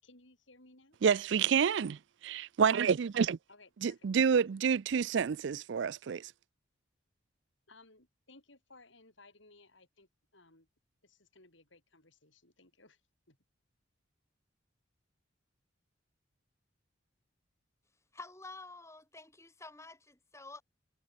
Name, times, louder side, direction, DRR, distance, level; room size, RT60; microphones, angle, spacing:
voice 1, 0.0-1.0 3.5-4.1 7.7-10.7 11.0-13.0 13.3-13.4, left 2 dB, 65° left, 6.4 m, -60 dB
voice 2, 1.0-3.4 3.8-6.3, right 6 dB, 60° right, 0.4 m, -28 dB
voice 3, 18.1-20.6, left 3 dB, 15° left, 7.7 m, -49 dB
head